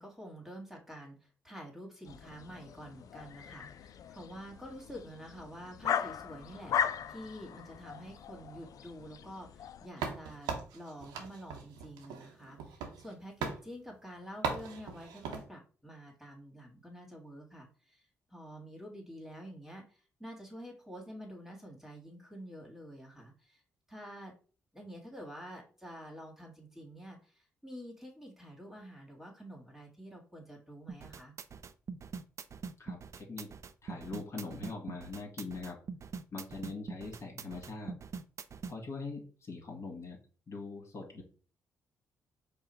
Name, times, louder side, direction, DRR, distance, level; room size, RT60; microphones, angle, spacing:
voice 1, 0.0-23.6 23.9-24.3 24.7-31.3, equal, 5° right, 0 dB, 1.9 m, -48 dB
sound 1, 2.1-9.9, left 8 dB, 60° left, 0.4 m, -38 dB
sound 2, 10.0-13.1 13.4-13.6 14.4-15.5, right 6 dB, 85° right, 0.8 m, -39 dB
sound 3, 30.9-38.7, right 5 dB, 50° right, 0.4 m, -43 dB
voice 2, 32.8-33.5 33.8-35.8 36.3-37.9 38.7-40.2 40.5-41.2, left 3 dB, 45° left, 0 dB, 1.7 m, -42 dB
4.7 x 2.3 x 4.4 m, 0.38 s
supercardioid pair, 55°, 7 cm